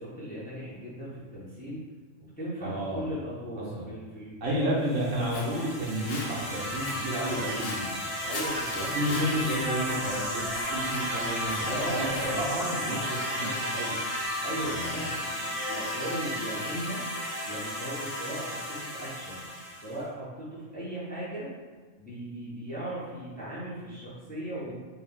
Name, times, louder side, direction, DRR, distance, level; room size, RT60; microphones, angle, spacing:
voice 1, 0.0-1.8 2.4-5.0 8.2-8.9 11.6-12.8 14.4-17.0 17.4-19.4 19.8-21.5 22.0-24.7, right 1 dB, 10° left, -9 dB, 0.9 m, -37 dB
voice 2, 2.6-3.1 3.8-3.9 4.4-8.0 8.7-14.0 14.6-14.9, equal, 75° right, -5 dB, 1.4 m, -31 dB
sound 1, 4.9-20.0, equal, 45° left, 1.3 m, -33 dB
Walk footsteps, 5.0-12.6, left 3 dB, 70° left, 0.9 m, -43 dB
4.2 x 2.6 x 3.7 m, 1.4 s
omnidirectional pair, 1.3 m